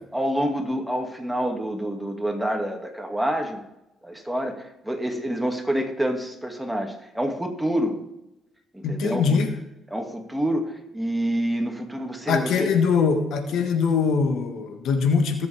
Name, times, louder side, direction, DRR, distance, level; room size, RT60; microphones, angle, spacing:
voice 1, 0.1-3.6 4.0-8.0 8.7-9.4 9.9-12.7, right 1 dB, 5° right, 3 dB, 2.1 m, -27 dB
voice 2, 8.8-9.6 12.3-15.5, left 5 dB, 80° left, 6 dB, 1.5 m, -22 dB
20.0 x 7.8 x 3.5 m, 0.90 s
cardioid pair, 90°, 0 cm